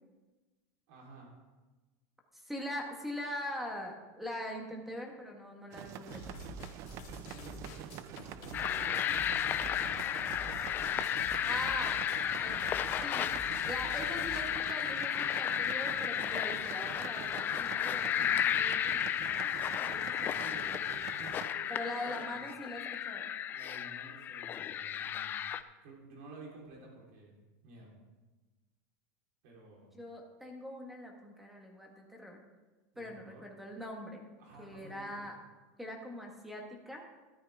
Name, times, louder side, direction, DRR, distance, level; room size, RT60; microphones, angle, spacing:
voice 1, 0.9-1.3 7.3-9.9 20.4-20.7 21.1-22.5 23.5-25.4 25.8-27.4 27.6-27.9 29.4-29.9 32.9-33.4 34.4-35.2, right 2 dB, 65° right, -2 dB, 4.1 m, -52 dB
voice 2, 2.3-6.4 11.5-12.0 12.4-18.8 19.2-20.8 21.7-23.3 29.9-32.4 33.0-34.2 34.6-35.4 35.8-37.0, left 1 dB, ahead, 1 dB, 1.6 m, -42 dB
sound 1, 5.7-21.5, right 11 dB, 35° right, 0.4 m, -47 dB
sound 2, 6.1-14.4, left 2 dB, 50° left, 2.2 m, -48 dB
sound 3, 8.5-25.6, left 10 dB, 25° left, 0.4 m, -33 dB
13.5 x 11.5 x 3.7 m, 1.2 s
supercardioid pair, 160°, 9 cm